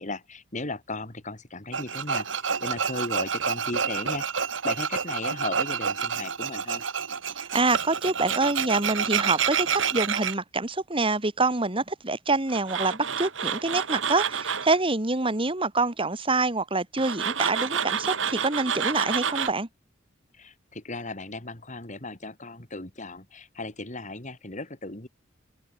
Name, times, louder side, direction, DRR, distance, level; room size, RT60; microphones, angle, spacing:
voice 1, 0.0-4.3 4.6-6.8 20.4-25.1, left 2 dB, 40° left, 3.3 m, -36 dB
Tools, 1.7-10.3 12.5-14.8 17.0-19.5, right 6 dB, 80° right, 2.3 m, -28 dB
voice 2, 7.4-19.7, right 3 dB, 30° right, 2.3 m, -26 dB
open air
head